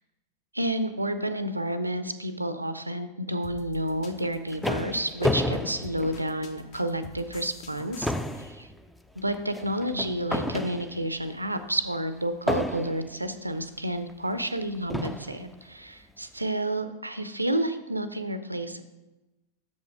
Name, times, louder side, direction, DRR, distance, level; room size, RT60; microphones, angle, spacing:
voice 1, 0.5-8.1 8.4-8.7 9.2-18.8, right 1 dB, 85° right, 11 dB, 0.4 m, -30 dB
sound 1, 3.4-8.5, left 5 dB, 45° left, 0.9 m, -46 dB
sound 2, 4.1-6.8 7.2-7.4 7.7-11.2 12.5-13.2 14.1-14.2 14.9-15.4, left 1 dB, 5° left, 0.4 m, -31 dB
6.6 x 5.4 x 4.7 m, 1.0 s
figure-of-eight pair, 90°, 0 cm